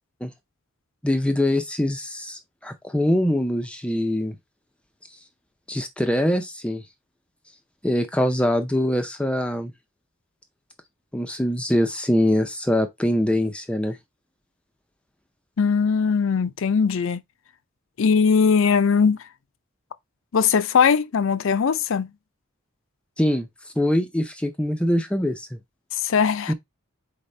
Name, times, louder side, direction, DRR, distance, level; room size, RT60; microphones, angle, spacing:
voice 1, 1.0-4.4 5.7-6.8 7.8-9.7 11.1-14.0 23.2-23.5 23.8-25.6 26.5-26.6, left 1 dB, 5° left, 0.4 m, -23 dB
voice 2, 15.6-17.2 18.0-19.2 20.3-22.1 25.9-26.5, left 6 dB, 65° left, 0.4 m, -20 dB
4.1 x 3.9 x 3.2 m
head